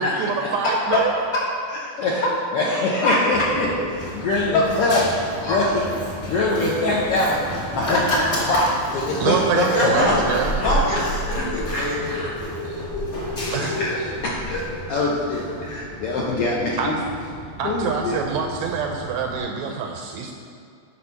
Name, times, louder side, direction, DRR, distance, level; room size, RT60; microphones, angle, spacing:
voice 1, 0.0-1.1 9.2-10.6 12.7-12.8 13.5-13.8 16.8-16.9 17.6-20.3, right 6 dB, 80° right, 3 dB, 1.7 m, -25 dB
voice 2, 0.6-1.4 3.0-3.4 4.5-4.7 5.4-5.5 8.0-8.6 9.7-10.2 10.5-12.0 13.6-13.8, left 1 dB, 50° left, -6 dB, 1.6 m, -23 dB
voice 3, 2.5-3.7 3.9-5.9 6.2-7.4 7.7-8.0 8.5-8.7 8.9-10.7 11.0-12.3 13.7-14.0 14.2-14.6 14.9-17.0 17.6-18.2, left 2 dB, 70° left, -4 dB, 1.5 m, -24 dB
Run, 3.3-19.4, equal, 35° left, 0.9 m, -32 dB
sound 1, 9.4-14.1, left 2 dB, 90° left, 3.6 m, -34 dB
9.7 x 4.1 x 5.6 m, 2.4 s
omnidirectional pair, 3.5 m